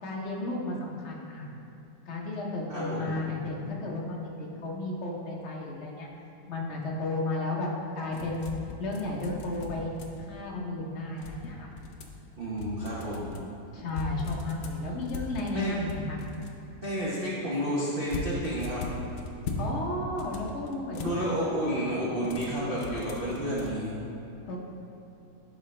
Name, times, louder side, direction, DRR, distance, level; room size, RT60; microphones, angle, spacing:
voice 1, 0.0-1.5 2.1-6.1 6.5-7.7 7.9-8.5 8.8-9.9 10.2-11.7 13.7-16.2 19.6-21.3 24.5-24.6, left 2 dB, 50° left, -2 dB, 0.8 m, -33 dB
voice 2, 2.7-3.1 12.4-13.3 15.5-15.7 16.8-18.9 20.9-24.0, equal, 45° right, -8 dB, 0.7 m, -31 dB
sound 1, 8.1-10.4 11.2-12.2 12.6-13.4 13.9-16.6 18.1-19.7 20.0-21.2 22.2-23.7, left 3 dB, 70° left, 1.1 m, -38 dB
11.0 x 3.9 x 3.2 m, 2.9 s
omnidirectional pair, 2.2 m